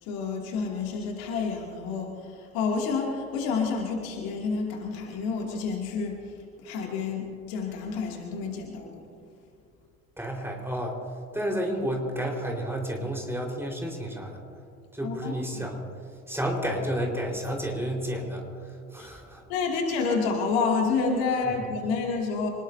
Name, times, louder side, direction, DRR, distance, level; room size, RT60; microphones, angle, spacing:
voice 1, 0.0-6.2 6.6-9.0 15.0-15.7 19.0-19.1 19.5-22.5, left 4 dB, 55° left, 1 dB, 2.6 m, -29 dB
voice 2, 10.2-11.0 11.3-14.4 14.9-15.8 16.3-18.4 18.9-19.4, equal, 5° right, -1 dB, 4.4 m, -31 dB
26.0 x 20.0 x 2.7 m, 2.3 s
figure-of-eight pair, 65°, 42 cm